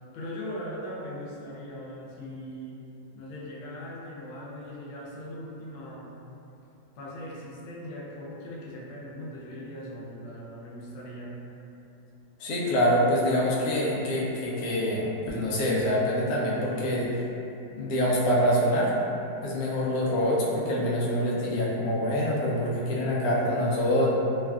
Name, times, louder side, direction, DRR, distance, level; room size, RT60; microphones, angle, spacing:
voice 1, 0.1-2.8 3.1-6.2 7.0-11.4, equal, 90° left, -4 dB, 1.4 m, -39 dB
voice 2, 12.4-17.1 17.8-18.9 19.4-24.1, equal, 75° left, -6 dB, 0.8 m, -25 dB
3.4 x 2.4 x 2.2 m, 2.8 s
omnidirectional pair, 2.1 m